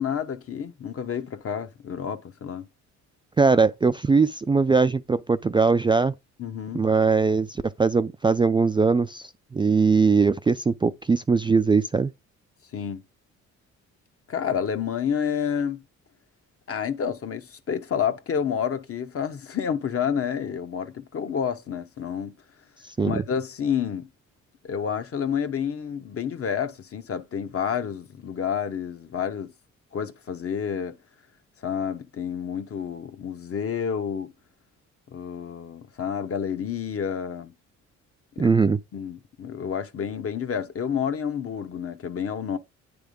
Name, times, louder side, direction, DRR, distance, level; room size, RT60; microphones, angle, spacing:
voice 1, 0.0-2.7 6.4-6.8 12.7-13.0 14.3-15.8 16.7-22.4 23.0-24.1 24.6-29.5 29.9-31.0 31.6-34.3 35.1-37.5 38.4-38.6 38.9-42.6, left 7 dB, 50° left, 1.1 m, -29 dB
voice 2, 3.4-6.1 6.7-12.1 23.0-23.2 38.4-38.8, right 4 dB, 15° right, 0.3 m, -21 dB
9.3 x 3.5 x 5.2 m
cardioid pair, 90°, 30 cm